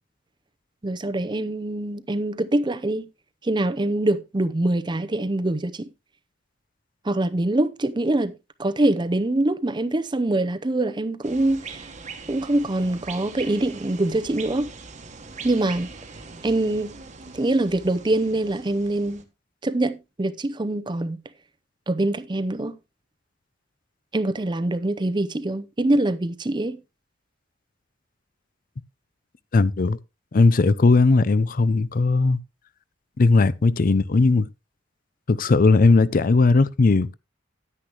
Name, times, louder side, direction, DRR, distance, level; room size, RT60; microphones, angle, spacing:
voice 1, 0.8-3.1 3.4-5.9 7.0-11.9 12.3-14.7 15.4-15.9 16.4-16.9 17.3-19.2 19.6-21.2 21.9-22.8 24.1-26.8, right 2 dB, 25° right, 0.6 m, -24 dB
sound 1, 11.2-19.2, right 4 dB, 40° right, 1.2 m, -41 dB
voice 2, 29.5-30.0 30.3-32.4 33.2-34.5 35.3-37.1, left 3 dB, 50° left, 0.5 m, -18 dB
10.0 x 9.7 x 2.9 m
head